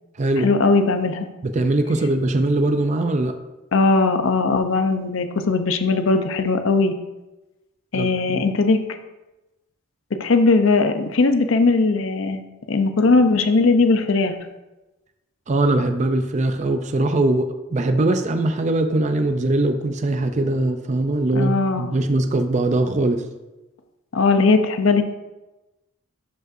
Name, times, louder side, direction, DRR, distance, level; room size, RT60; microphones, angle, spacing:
voice 1, 0.4-1.3 3.7-6.9 7.9-8.8 10.2-12.4 12.7-14.4 21.3-21.9 24.1-25.0, left 3 dB, 65° left, 8 dB, 0.6 m, -19 dB
voice 2, 1.4-3.3 7.9-8.5 15.5-23.2, right 2 dB, 35° right, 7 dB, 0.4 m, -21 dB
12.0 x 5.3 x 2.6 m, 1.0 s
head